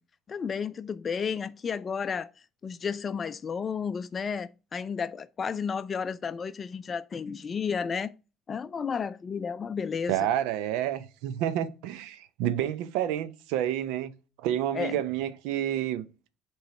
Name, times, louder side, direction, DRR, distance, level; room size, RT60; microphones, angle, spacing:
voice 1, 0.3-2.3 2.6-8.1 8.5-10.2 14.7-15.0, left 6 dB, 40° left, 0.4 m, -32 dB
voice 2, 10.1-14.1 14.4-16.1, right 11 dB, 75° right, 0.6 m, -29 dB
7.5 x 3.1 x 4.7 m
hypercardioid pair, 60°, 0 cm